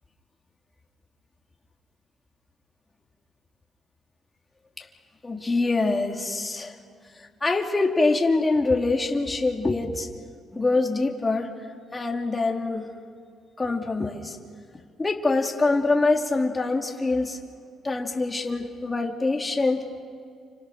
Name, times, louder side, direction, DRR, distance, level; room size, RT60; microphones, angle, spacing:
voice 1, 5.2-6.8 7.2-10.1 10.5-11.5 11.9-12.9 13.6-14.4 15.0-17.4 17.8-19.9, left 3 dB, 20° left, 1 dB, 2.7 m, -24 dB
30.0 x 26.0 x 6.5 m, 2.2 s
cardioid pair, 90°, 0 cm